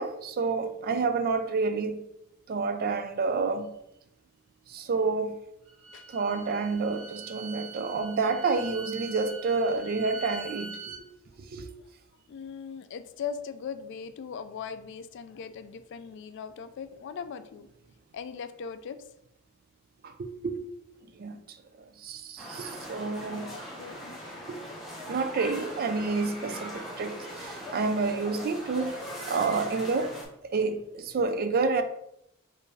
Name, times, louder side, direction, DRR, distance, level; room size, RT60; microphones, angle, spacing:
voice 1, 0.0-2.0 2.5-3.7 4.7-5.4 6.1-11.1 11.4-11.7 20.0-20.7 21.1-21.6 22.0-23.5 24.5-24.6 25.1-30.1 30.5-31.8, right 4 dB, 45° right, 0.4 m, -29 dB
Bowed string instrument, 5.7-11.0, right 4 dB, 70° right, 0.8 m, -43 dB
voice 2, 12.3-17.7 18.1-19.0 23.3-24.2, left 6 dB, 60° left, 0.3 m, -39 dB
sound 1, 22.4-30.2, equal, ahead, 1.2 m, -40 dB
4.4 x 2.6 x 3.2 m
head